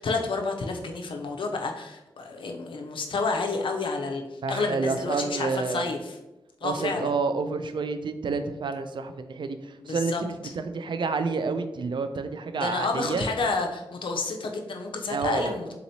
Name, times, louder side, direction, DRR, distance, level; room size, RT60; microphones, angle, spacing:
voice 1, 0.0-6.2 6.6-7.1 9.8-10.5 12.6-15.7, left 3 dB, 70° left, 3 dB, 0.5 m, -30 dB
voice 2, 4.4-5.9 6.6-13.2 15.1-15.6, right 4 dB, 60° right, 9 dB, 0.4 m, -29 dB
3.9 x 3.0 x 2.7 m, 1.0 s
cardioid pair, 40°, 9 cm